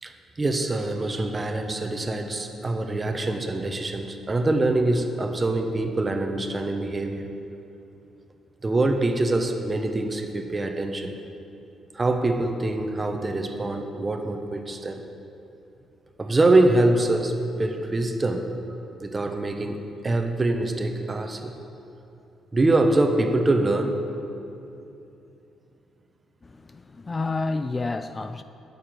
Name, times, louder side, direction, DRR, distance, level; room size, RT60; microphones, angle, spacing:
voice 1, 0.0-7.3 8.6-11.2 11.9-15.0 16.2-18.5 19.0-21.6 22.5-24.0, right 2 dB, 25° right, 1.2 m, -24 dB
voice 2, 26.4-28.4, left 3 dB, 25° left, 0.4 m, -30 dB
11.5 x 6.8 x 9.3 m
cardioid pair, 90°, 0 cm